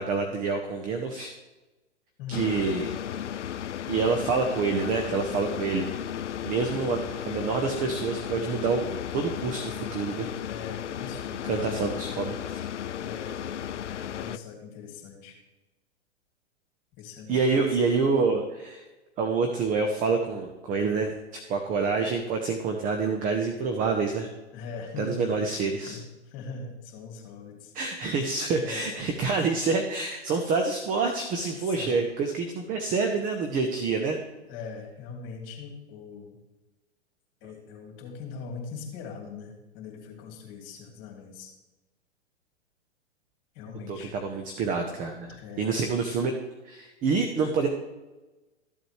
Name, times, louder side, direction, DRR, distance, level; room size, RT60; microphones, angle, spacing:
voice 1, 0.0-1.3 2.3-2.9 3.9-5.9 6.4-8.9 9.1-10.3 11.4-12.6 17.3-18.8 19.2-24.3 25.0-26.0 27.7-34.2 43.9-46.3 46.6-47.7, right 4 dB, 25° right, 5 dB, 0.9 m, -27 dB
voice 2, 2.2-2.5 10.4-12.0 13.0-13.4 13.8-15.4 17.0-17.8 24.5-25.4 25.9-27.7 28.6-28.9 31.5-32.0 34.5-36.4 37.4-41.5 43.5-44.1 45.4-45.7, left 5 dB, 35° left, 1 dB, 2.7 m, -41 dB
sound 1, 2.3-14.4, left 9 dB, 85° left, 0.5 m, -35 dB
13.5 x 7.8 x 3.2 m, 1.1 s
hypercardioid pair, 115°, 35 cm